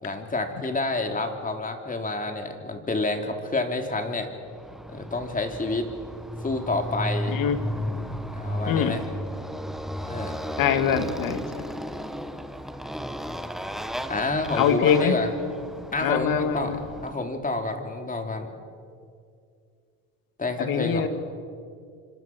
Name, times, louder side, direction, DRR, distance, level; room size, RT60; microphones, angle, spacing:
voice 1, 0.0-4.3 4.9-5.9 6.4-7.4 8.3-9.0 10.1-10.4 14.1-15.3 15.9-16.7 17.0-18.5 20.4-21.1, left 2 dB, 20° left, 4 dB, 3.5 m, -28 dB
Motorcycle, 4.5-17.2, equal, ahead, 1.4 m, -34 dB
voice 2, 10.6-11.6 14.6-15.2 16.0-16.8 20.6-21.1, left 8 dB, 60° left, 8 dB, 2.5 m, -23 dB
28.0 x 25.5 x 6.3 m, 2.3 s
supercardioid pair, 90°, 39 cm